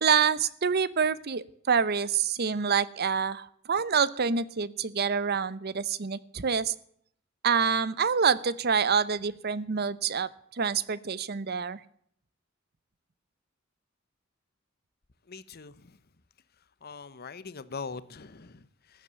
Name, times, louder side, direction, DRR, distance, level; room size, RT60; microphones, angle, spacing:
voice 1, 0.0-6.7 7.4-11.8, right 6 dB, 55° right, 0.8 m, -27 dB
voice 2, 15.3-16.0 16.8-19.0, left 4 dB, 50° left, 0.9 m, -42 dB
15.0 x 10.5 x 6.9 m
head